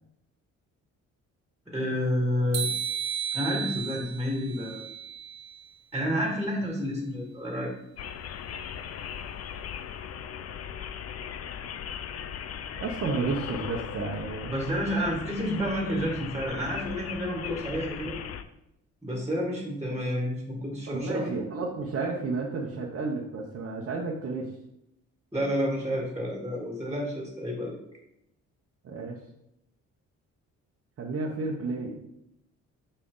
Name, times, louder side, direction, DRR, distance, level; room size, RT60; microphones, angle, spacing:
voice 1, 1.7-2.7 3.3-4.8 5.9-7.7 14.5-18.1 19.0-21.3 25.3-27.7, equal, 10° right, -1 dB, 1.9 m, -30 dB
sound 1, 2.5-5.6, right 8 dB, 90° right, 1.0 m, -33 dB
sound 2, 8.0-18.4, left 8 dB, 55° left, 0.6 m, -38 dB
voice 2, 12.8-14.8 20.9-24.5 28.8-29.2 31.0-32.0, right 3 dB, 50° right, -2 dB, 1.1 m, -32 dB
6.4 x 5.5 x 3.9 m, 0.81 s
cardioid pair, 90°, 30 cm